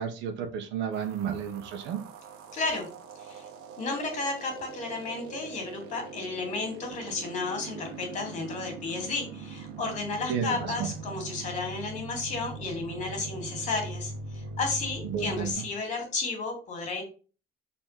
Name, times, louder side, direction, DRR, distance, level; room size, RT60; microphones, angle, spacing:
voice 1, 0.0-2.0 10.3-10.9 15.0-15.6, right 7 dB, 65° right, 5 dB, 1.6 m, -32 dB
sound 1, 0.9-15.5, right 4 dB, 80° right, 1.6 m, -42 dB
voice 2, 2.5-2.9 3.2-3.5 3.8-17.0, left 3 dB, 35° left, 3 dB, 2.9 m, -33 dB
7.2 x 4.3 x 5.9 m, 0.37 s
cardioid pair, 180°, 21 cm